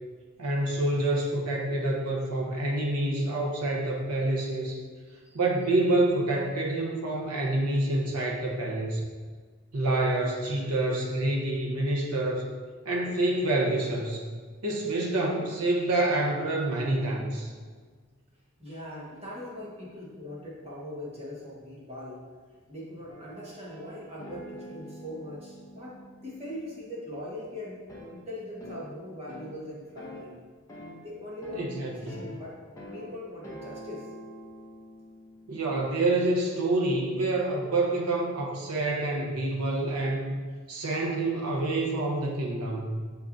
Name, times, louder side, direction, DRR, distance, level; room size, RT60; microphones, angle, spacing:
voice 1, 0.4-4.8 5.3-9.0 9.7-12.4 12.8-14.2 14.6-17.5 31.6-32.1 35.5-40.3 40.7-43.0, right 2 dB, 85° right, -2 dB, 1.0 m, -27 dB
voice 2, 5.1-5.4 18.6-22.3 22.7-27.8 28.1-30.3 31.0-34.1, left 1 dB, 30° right, -6 dB, 1.4 m, -41 dB
sound 1, 23.1-27.1 27.9-28.1 28.6-28.9 29.3-29.6 30.0-30.2 30.7-31.0 31.4-31.7 32.1-32.4 32.8-33.1 33.4-35.9, equal, 15° left, 0.9 m, -45 dB
6.9 x 5.8 x 2.7 m, 1.5 s
head